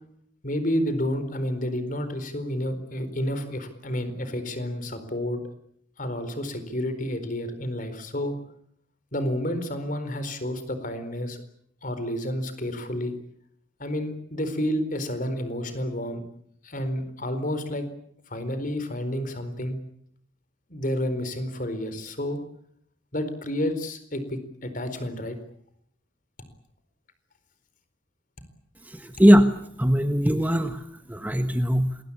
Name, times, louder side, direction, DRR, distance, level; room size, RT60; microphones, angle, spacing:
voice 1, 0.4-5.4 6.0-8.3 9.1-11.4 11.8-13.1 13.8-16.2 16.6-17.9 18.3-19.8 20.7-22.4 23.1-25.4, left 1 dB, 40° left, 11 dB, 4.3 m, -30 dB
voice 2, 28.9-29.5 29.8-32.0, equal, 10° right, 8 dB, 1.3 m, -20 dB
27.5 x 21.0 x 8.7 m, 0.68 s
head